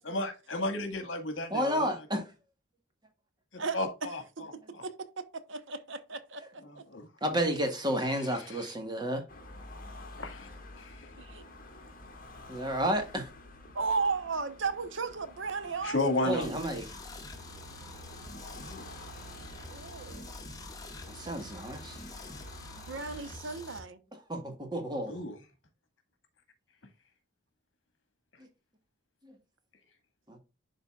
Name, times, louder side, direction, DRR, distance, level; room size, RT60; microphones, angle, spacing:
voice 1, 0.0-1.9 3.7-4.2 4.7-4.8 6.6-7.1 8.3-8.7 10.2-10.5 10.8-11.1 15.8-16.5 18.6-18.9 25.1-25.4, left 2 dB, 65° left, 1.8 m, -33 dB
voice 2, 1.5-2.3 7.2-9.2 12.5-13.3 16.2-16.9 21.1-22.0 24.3-25.2 28.4-28.5 29.2-29.3 30.3-30.4, equal, 20° right, 1.5 m, -31 dB
voice 3, 3.6-4.1 4.4-6.8 11.2-11.4 13.7-16.6 19.7-20.3 22.9-24.0, right 4 dB, 65° right, 0.9 m, -35 dB
sound 1, 9.3-23.4, left 1 dB, 45° left, 2.0 m, -49 dB
sound 2, 16.4-23.8, left 2 dB, 20° left, 1.2 m, -46 dB
11.5 x 3.9 x 2.4 m
head